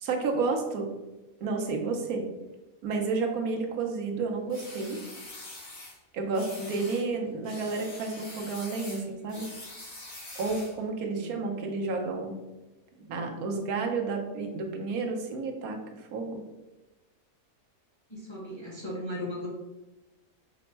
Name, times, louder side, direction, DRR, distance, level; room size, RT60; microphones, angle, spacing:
voice 1, 0.0-0.9 1.4-2.2 2.8-5.0 6.1-9.5 10.4-12.4 13.1-16.4, right 4 dB, 85° right, 2 dB, 1.2 m, -31 dB
sound 1, 4.5-6.0 6.3-7.1 7.4-10.8, left 2 dB, 75° left, 1.8 m, -44 dB
voice 2, 11.2-11.5 18.1-19.5, left 1 dB, 25° left, -4 dB, 0.8 m, -37 dB
5.0 x 2.1 x 4.4 m, 1.0 s
omnidirectional pair, 1.5 m